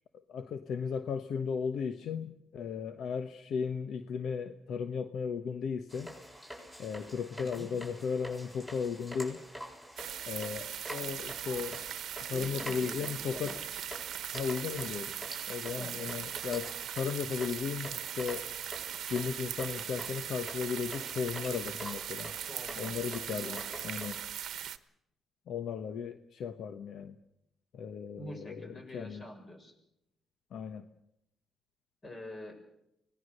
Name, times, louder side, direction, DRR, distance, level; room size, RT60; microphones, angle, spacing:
voice 1, 0.3-6.1 6.8-9.4 10.3-11.8 12.3-13.6 14.3-15.2 15.5-18.5 19.1-22.3 22.8-23.6 23.8-24.2 25.5-27.2 27.7-29.2 30.5-30.9, left 6 dB, 70° left, 9 dB, 1.0 m, -36 dB
sound 1, 5.9-24.2, equal, 10° left, 7.1 m, -47 dB
voice 2, 7.3-7.7 12.3-13.6 15.7-16.1 22.5-23.0 23.3-23.6 28.2-29.7 32.0-32.6, left 1 dB, 35° left, 4 dB, 6.6 m, -46 dB
sound 2, 10.0-24.8, right 10 dB, 70° right, 1.0 m, -40 dB
25.0 x 18.5 x 6.6 m, 0.81 s
cardioid pair, 90°, 0 cm